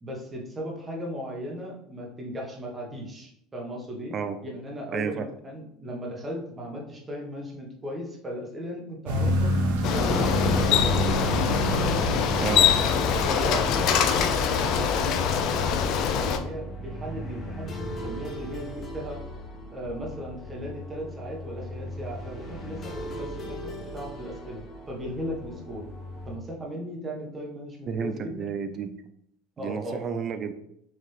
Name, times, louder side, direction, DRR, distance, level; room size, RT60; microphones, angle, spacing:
voice 1, 0.0-4.1 4.4-9.5 9.8-11.4 13.2-19.2 19.7-23.6 23.9-25.9 26.3-28.5 29.6-30.0, equal, 20° right, -1 dB, 1.2 m, -37 dB
voice 2, 4.9-5.3 12.4-12.8 27.9-29.0 29.6-30.5, right 6 dB, 40° right, 8 dB, 0.4 m, -31 dB
sound 1, 9.1-13.6, equal, 85° right, 0.9 m, -27 dB
Bicycle, 9.8-16.4, left 7 dB, 55° left, 0.5 m, -24 dB
sound 2, 11.1-26.4, left 1 dB, 35° left, 0.8 m, -38 dB
4.6 x 2.9 x 3.2 m, 0.74 s
supercardioid pair, 110°, 0 cm